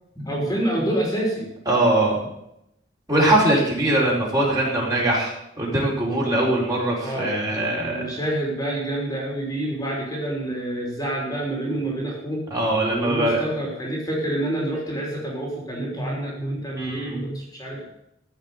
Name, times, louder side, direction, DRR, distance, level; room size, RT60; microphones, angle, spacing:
voice 1, 0.2-1.5 7.0-12.4 12.9-17.9, right 1 dB, 20° left, -2 dB, 3.2 m, -27 dB
voice 2, 1.7-2.2 3.1-8.1 12.5-13.4 16.7-17.2, right 1 dB, 20° right, -3 dB, 4.7 m, -22 dB
14.5 x 6.2 x 9.2 m, 0.82 s
head